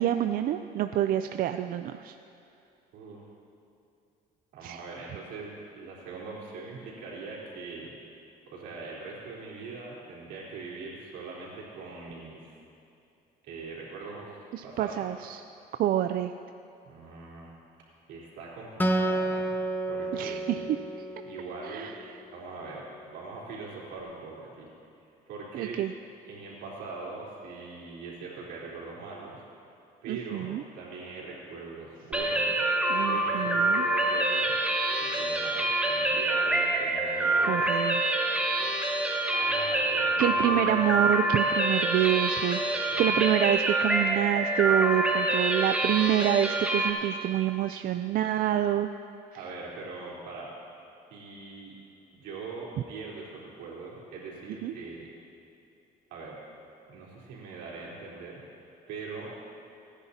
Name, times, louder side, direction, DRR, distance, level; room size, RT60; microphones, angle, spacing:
voice 1, 0.0-2.1 4.6-4.8 14.5-15.4 15.8-16.3 20.1-20.8 21.7-21.9 25.5-25.9 30.1-30.6 32.9-33.8 37.5-38.0 40.2-48.9 54.6-54.7, right 12 dB, 60° right, 8 dB, 0.4 m, -27 dB
voice 2, 4.5-7.9 8.5-12.6 13.4-14.4 14.6-15.0 16.8-17.5 18.1-19.5 19.8-20.7 21.2-21.9 22.3-24.7 25.0-25.8 26.3-29.4 30.0-32.6 33.0-34.5 35.0-37.6 38.3-38.7 39.3-40.9 42.7-43.2 49.3-50.5 51.1-51.7 52.1-55.1 56.1-56.4 56.9-59.3, right 4 dB, 85° right, -5 dB, 3.8 m, -42 dB
Acoustic guitar, 18.8-22.2, right 1 dB, 10° left, 0.8 m, -31 dB
sound 1, 32.1-46.9, right 2 dB, 10° right, 1.4 m, -26 dB
26.5 x 9.9 x 2.8 m, 2.7 s
cardioid pair, 110°, 17 cm